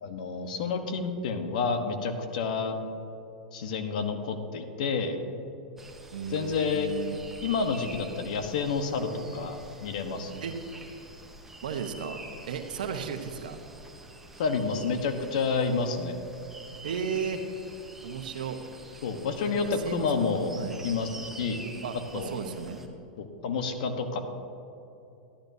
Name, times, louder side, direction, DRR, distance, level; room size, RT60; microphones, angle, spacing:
voice 1, 0.0-2.8 3.5-5.2 6.3-6.9 7.4-10.3 14.4-16.2 19.0-20.5 20.8-21.6 22.1-22.3 23.2-24.2, left 5 dB, 70° left, 6 dB, 1.1 m, -29 dB
sound 1, 5.8-22.9, right 2 dB, 5° right, 0.9 m, -47 dB
voice 2, 6.1-7.2 10.4-10.6 11.6-12.2 12.5-13.6 16.8-17.4 18.0-18.6 19.6-20.1 20.6-20.8 21.8-22.8, right 6 dB, 80° right, 6 dB, 1.0 m, -34 dB
12.0 x 11.5 x 2.7 m, 2.9 s
hypercardioid pair, 130°, 4 cm